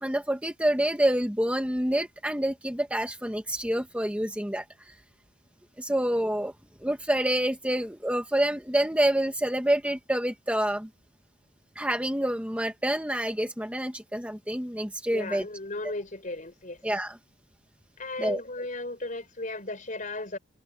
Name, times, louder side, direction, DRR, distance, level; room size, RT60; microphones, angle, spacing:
voice 1, 0.0-4.6 5.8-6.5 6.8-10.9 11.7-15.4 16.8-17.2 18.2-18.4, right 1 dB, 5° right, 1.5 m, -27 dB
voice 2, 15.1-16.8 18.0-20.4, left 2 dB, 40° left, 4.6 m, -35 dB
head